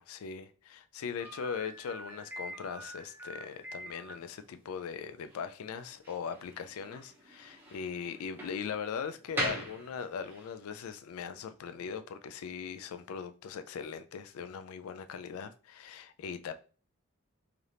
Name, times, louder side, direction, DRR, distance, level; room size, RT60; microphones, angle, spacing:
voice 1, 0.0-16.5, left 6 dB, 85° left, 0.3 m, -40 dB
Slam, 1.2-10.5, right 1 dB, 10° right, 0.6 m, -42 dB
3.3 x 2.4 x 2.7 m
head